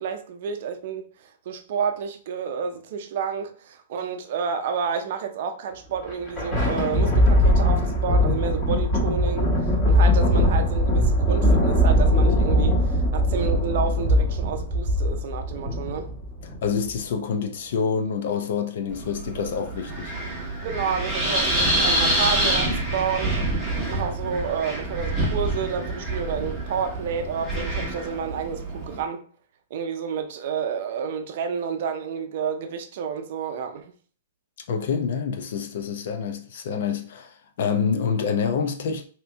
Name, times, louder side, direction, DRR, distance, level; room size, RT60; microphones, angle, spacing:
voice 1, 0.0-16.1 20.6-23.4 23.8-29.2 29.7-33.9, right 6 dB, 55° right, 0.5 m, -30 dB
Thunder, 5.9-16.7, equal, 20° left, 1.3 m, -21 dB
voice 2, 16.6-20.1 34.7-39.0, left 6 dB, 65° left, 0.6 m, -27 dB
Wind, 18.9-29.0, right 1 dB, 5° left, 1.1 m, -27 dB
2.9 x 2.6 x 3.4 m
hypercardioid pair, 150°, 0 cm